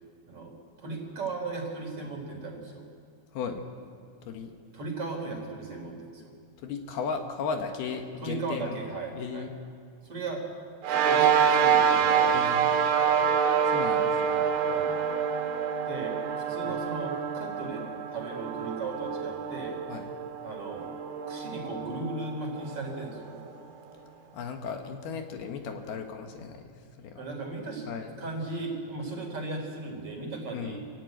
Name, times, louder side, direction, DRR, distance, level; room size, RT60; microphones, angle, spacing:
voice 1, 0.3-2.8 4.7-6.3 8.2-9.5 10.0-10.4 10.9-12.5 14.7-14.9 15.9-19.8 20.4-20.9 21.3-23.4 27.2-27.9 28.2-30.8, right 3 dB, 35° right, 2 dB, 4.3 m, -36 dB
voice 2, 3.3-3.6 4.2-4.5 6.6-8.8 9.2-9.5 12.3-12.8 13.6-14.5 16.6-16.9 19.9-20.1 24.3-27.3 27.9-28.2 30.5-30.8, left 5 dB, 75° left, 4 dB, 3.3 m, -36 dB
sound 1, 10.8-23.6, right 7 dB, 75° right, 3.5 m, -27 dB
27.0 x 16.0 x 9.2 m, 2.2 s
omnidirectional pair, 4.7 m